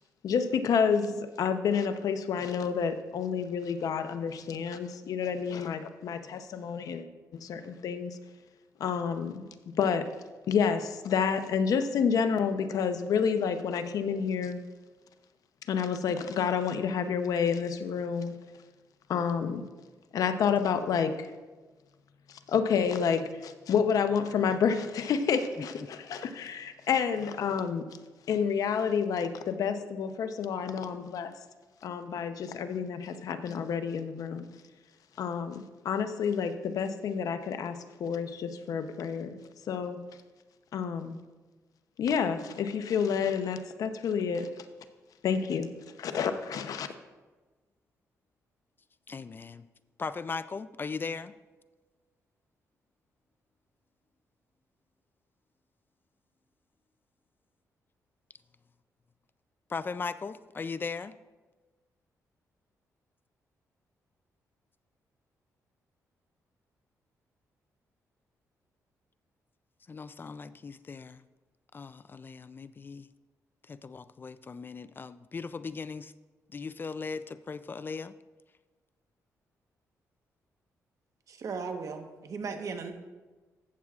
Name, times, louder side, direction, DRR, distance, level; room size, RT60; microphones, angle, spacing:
voice 1, 0.2-7.1 7.4-8.2 8.8-9.5 9.8-10.1 10.5-14.6 15.7-18.4 19.1-19.6 20.1-21.3 22.5-27.9 28.3-31.3 31.8-34.5 35.2-39.3 39.7-40.0 40.7-41.2 42.0-44.5 45.2-45.7 46.0-46.9, left 6 dB, 70° left, 9 dB, 0.7 m, -29 dB
voice 2, 49.1-49.7 50.0-51.3 59.7-61.1 69.9-71.2 71.7-73.1 73.7-76.1 76.5-78.1, left 5 dB, 35° left, 14 dB, 0.3 m, -38 dB
voice 3, 81.3-82.9, right 5 dB, 60° right, 5 dB, 1.2 m, -37 dB
14.0 x 8.5 x 2.4 m, 1.3 s
cardioid pair, 80°, 6 cm